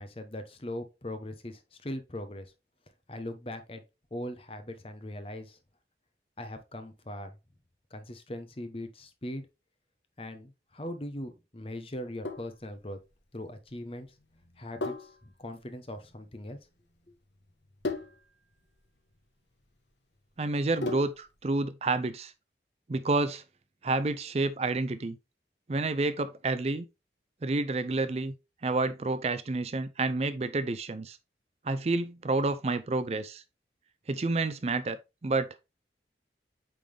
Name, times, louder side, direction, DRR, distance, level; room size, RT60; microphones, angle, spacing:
voice 1, 0.0-2.5 3.1-3.8 4.1-5.6 6.4-7.4 7.9-9.5 10.2-13.0 13.3-14.1 14.6-16.6, left 1 dB, 30° left, 0.9 m, -40 dB
Sink (filling or washing), 11.9-21.4, left 3 dB, 80° left, 1.1 m, -40 dB
voice 2, 20.4-22.3 22.9-23.4 23.8-25.2 25.7-26.9 27.4-28.3 28.6-31.2 31.6-33.4 34.1-35.0 35.2-35.5, right 3 dB, 35° right, 0.4 m, -29 dB
8.7 x 3.8 x 3.3 m
head